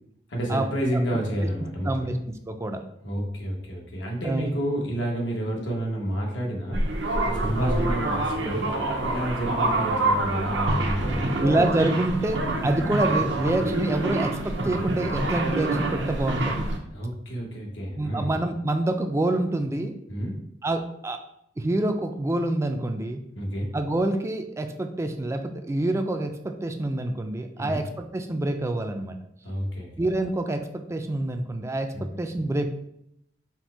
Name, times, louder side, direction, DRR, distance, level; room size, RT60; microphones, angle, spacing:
voice 1, 0.3-2.1 3.0-6.8 7.2-8.7 9.0-11.6 16.9-18.3 20.1-20.3 23.3-23.7 27.6-27.8 29.4-29.9 31.9-32.0, right 1 dB, 90° left, -1 dB, 1.1 m, -29 dB
voice 2, 1.8-2.8 4.2-4.5 7.6-7.8 9.4-9.5 11.1-16.7 18.0-19.9 20.6-21.2 21.6-23.2 23.7-29.2 30.0-32.7, right 1 dB, 15° right, 7 dB, 0.3 m, -27 dB
sound 1, 6.7-16.8, right 2 dB, 75° right, 0.6 m, -27 dB
4.3 x 2.1 x 4.5 m, 0.77 s
head